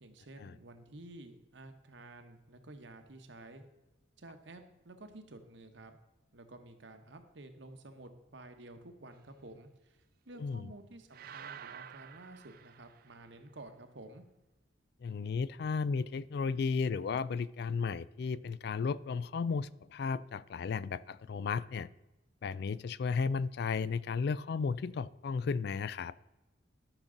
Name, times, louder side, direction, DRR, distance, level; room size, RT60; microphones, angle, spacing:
voice 1, 0.0-3.6 4.2-6.0 6.3-10.0 10.3-14.2, right 2 dB, 70° right, 7 dB, 1.1 m, -51 dB
voice 2, 10.4-10.7 15.0-21.9 22.4-26.1, left 5 dB, 55° left, 19 dB, 0.3 m, -34 dB
sound 1, 11.1-13.4, right 8 dB, 50° right, 0.4 m, -50 dB
12.0 x 6.0 x 3.9 m, 1.0 s
head